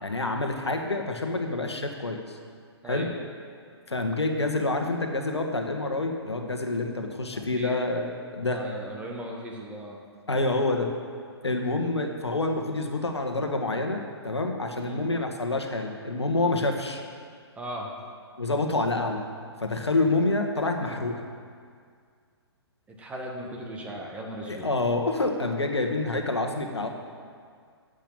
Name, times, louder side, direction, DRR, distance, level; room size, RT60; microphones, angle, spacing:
voice 1, 0.0-2.4 2.8-3.1 3.9-8.6 10.3-10.9 11.4-17.0 18.4-19.2 19.6-21.2 24.5-26.9, left 2 dB, 75° left, 4 dB, 1.5 m, -27 dB
voice 2, 7.3-7.8 8.4-10.0 14.7-15.0 17.6-17.9 22.9-24.7, right 1 dB, 10° right, -1 dB, 1.6 m, -37 dB
10.5 x 8.2 x 8.7 m, 2.1 s
figure-of-eight pair, 125°, 14 cm